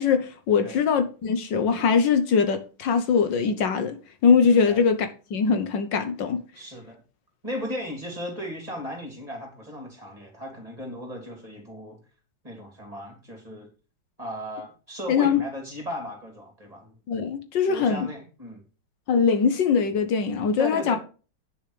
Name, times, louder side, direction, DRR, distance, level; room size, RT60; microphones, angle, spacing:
voice 1, 0.0-4.0 4.2-6.4 15.1-15.4 17.1-18.1 19.1-21.0, left 6 dB, 75° left, 1.8 m, -22 dB
voice 2, 6.5-7.0 7.4-12.0 12.4-13.7 14.2-17.0 17.7-18.6 20.6-21.0, equal, 20° right, 3.2 m, -36 dB
9.2 x 7.0 x 5.0 m
omnidirectional pair, 2.0 m